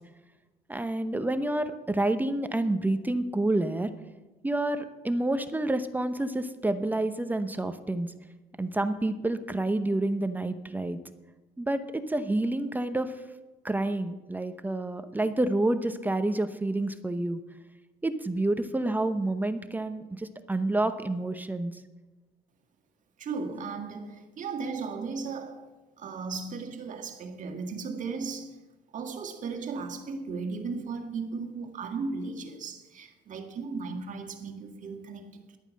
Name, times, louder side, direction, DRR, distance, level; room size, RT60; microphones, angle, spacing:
voice 1, 0.7-3.9 4.4-8.1 8.6-11.0 11.6-13.1 13.6-17.4 18.0-21.8, right 2 dB, 10° right, 0.8 m, -28 dB
voice 2, 23.2-25.7 26.0-28.6 28.9-35.6, right 4 dB, 50° right, 1.8 m, -36 dB
11.5 x 8.9 x 7.5 m
cardioid pair, 110°, 17 cm